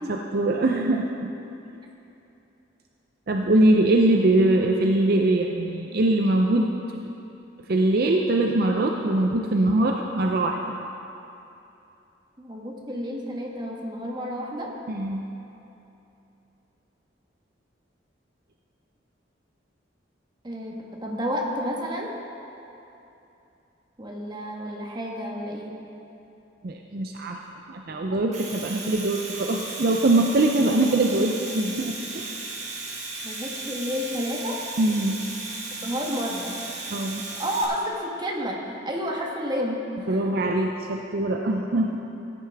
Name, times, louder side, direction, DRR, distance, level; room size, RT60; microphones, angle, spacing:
voice 1, 0.1-1.3 3.3-6.7 7.0-7.1 7.7-10.6 14.9-15.2 26.6-27.4 27.7-32.3 34.8-35.2 36.9-37.2 40.1-42.0, right 2 dB, 55° right, 2 dB, 0.6 m, -22 dB
voice 2, 12.4-14.7 20.4-22.1 24.0-25.8 33.2-34.6 35.8-36.5 37.4-40.2, equal, 25° right, -1 dB, 1.3 m, -30 dB
Domestic sounds home sounds, 28.1-37.6, right 3 dB, 40° right, 1.7 m, -36 dB
15.0 x 9.9 x 3.5 m, 2.9 s
head